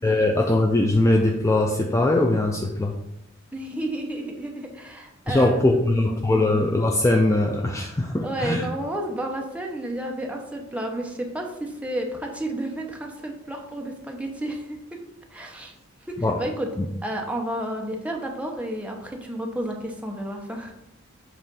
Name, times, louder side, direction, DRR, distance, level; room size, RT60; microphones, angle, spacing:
voice 1, 0.0-3.0 5.3-8.7 16.2-16.4 16.8-16.9, left 2 dB, 15° left, 2 dB, 0.4 m, -21 dB
voice 2, 3.5-5.6 5.9-6.5 8.2-15.0 15.3-15.7 16.1-16.7 17.0-20.7, right 1 dB, 5° right, 1 dB, 0.7 m, -31 dB
7.4 x 2.5 x 5.4 m, 0.88 s
head